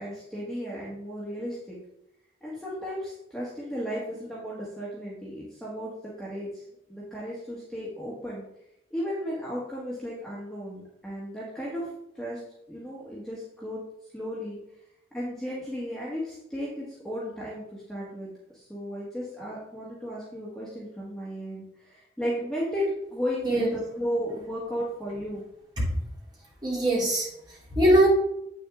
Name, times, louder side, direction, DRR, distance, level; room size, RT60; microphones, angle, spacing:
voice 1, 0.0-1.8 2.4-5.9 6.2-6.6 6.9-8.4 8.9-11.9 12.1-12.4 12.7-13.8 14.1-14.6 15.1-25.4, equal, ahead, -7 dB, 1.7 m, -34 dB
voice 2, 26.6-28.1, right 1 dB, 25° right, -6 dB, 3.5 m, -22 dB
8.6 x 6.4 x 3.7 m, 0.82 s
head